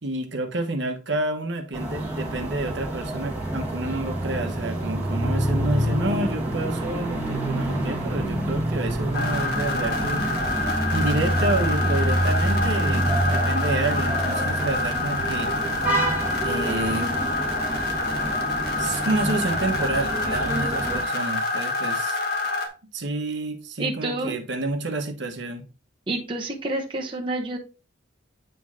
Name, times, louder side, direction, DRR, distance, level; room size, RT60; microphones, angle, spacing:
voice 1, 0.0-10.3 10.9-15.5 16.4-17.1 18.6-22.2 22.9-25.7, right 2 dB, 65° right, 1.2 m, -29 dB
sound 1, 1.7-21.0, right 1 dB, 5° right, 1.6 m, -27 dB
sound 2, 9.1-22.7, left 2 dB, 55° left, 1.3 m, -27 dB
voice 2, 23.8-24.4 26.1-27.6, right 2 dB, 25° right, 1.0 m, -28 dB
9.2 x 3.2 x 3.7 m
head